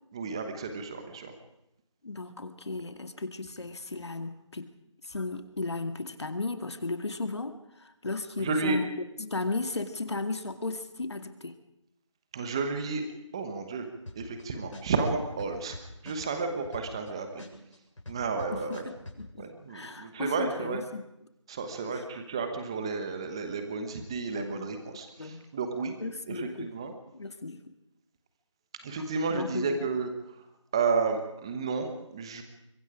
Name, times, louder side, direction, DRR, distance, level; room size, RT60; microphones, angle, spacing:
voice 1, 0.1-1.3 8.4-8.8 12.3-13.1 13.3-13.8 14.1-15.8 16.0-17.4 18.1-18.8 19.4-20.8 21.5-26.0 26.3-26.9 28.8-30.4 30.7-32.4, right 4 dB, 10° right, 7 dB, 1.1 m, -32 dB
voice 2, 2.0-4.7 5.0-8.9 9.2-11.5 18.5-21.0 21.9-22.0 24.4-24.7 25.2-25.4 26.0-26.7 27.1-27.6 29.3-29.9, left 3 dB, 60° left, 8 dB, 2.1 m, -35 dB
sound 1, 14.1-14.4 14.7-17.1 17.4-19.2, left 1 dB, 85° left, 7.7 m, -44 dB
25.0 x 22.5 x 5.0 m, 0.83 s
figure-of-eight pair, 170°, 16 cm